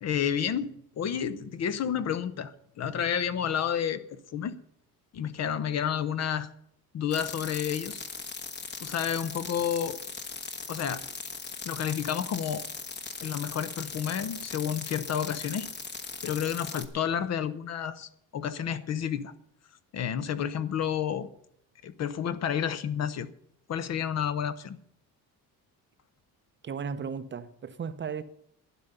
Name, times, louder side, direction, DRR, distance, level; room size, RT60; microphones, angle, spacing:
voice 1, 0.0-4.6 5.1-6.5 6.9-8.0 8.8-10.0 10.7-11.0 11.6-12.6 13.2-15.7 16.2-19.3 19.9-21.3 21.8-23.3 23.7-24.8, left 8 dB, 45° left, 0.8 m, -30 dB
sound 1, 7.1-16.9, left 5 dB, 25° left, 1.2 m, -39 dB
voice 2, 26.6-28.2, right 6 dB, 30° right, 0.7 m, -35 dB
12.0 x 9.8 x 6.7 m
cardioid pair, 155°, 38 cm